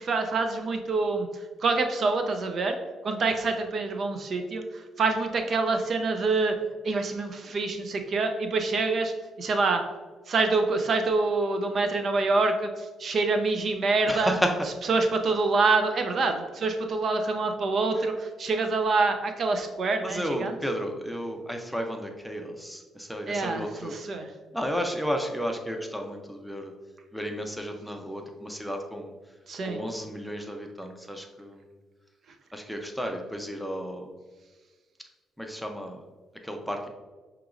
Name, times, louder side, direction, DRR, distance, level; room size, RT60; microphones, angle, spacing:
voice 1, 0.0-2.8 3.0-6.5 6.8-9.1 9.4-9.8 10.3-14.3 14.9-20.5 23.3-24.3 29.5-29.8, right 3 dB, 55° right, 5 dB, 0.4 m, -26 dB
voice 2, 14.1-14.6 17.9-18.1 20.0-23.9 24.5-26.7 27.1-29.1 29.6-31.7 32.5-34.1 35.4-36.0 36.4-36.9, equal, ahead, 3 dB, 0.6 m, -32 dB
5.9 x 2.9 x 2.5 m, 1.3 s
cardioid pair, 90°, 0 cm